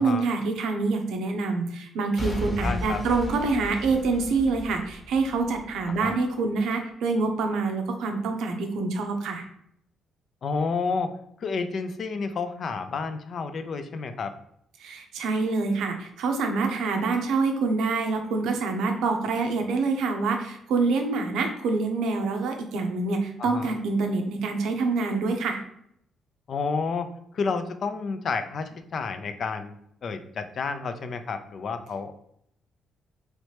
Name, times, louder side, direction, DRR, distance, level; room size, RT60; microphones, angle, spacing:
voice 1, 0.0-9.4 14.8-25.6, right 3 dB, 85° right, 4 dB, 0.6 m, -26 dB
Boom / Shatter / Crushing, 2.2-6.2 6.7-6.8, equal, 30° left, 1.0 m, -35 dB
voice 2, 2.6-3.0 5.9-6.1 10.4-11.1 11.4-14.3 23.4-23.7 26.5-27.1 27.3-32.3, left 4 dB, 55° left, 9 dB, 0.4 m, -30 dB
3.1 x 2.9 x 3.1 m, 0.71 s
cardioid pair, 90°, 0 cm